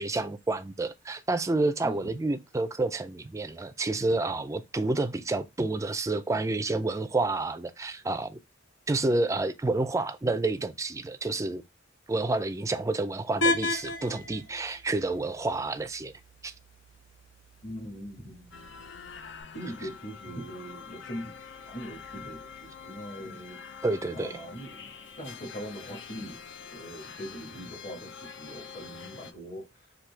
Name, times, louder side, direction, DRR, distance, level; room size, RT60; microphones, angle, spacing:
voice 1, 0.0-8.4 8.9-11.6 12.1-16.1 16.4-16.5 23.8-24.3, right 2 dB, 15° right, 0.4 m, -29 dB
sound 1, 13.4-19.4, left 1 dB, 90° left, 1.0 m, -35 dB
voice 2, 17.6-18.7 19.5-21.3 21.6-23.6 24.1-29.9, equal, 40° left, 1.5 m, -41 dB
sound 2, 18.5-29.3, left 6 dB, 65° left, 0.6 m, -46 dB
5.9 x 2.7 x 3.2 m
head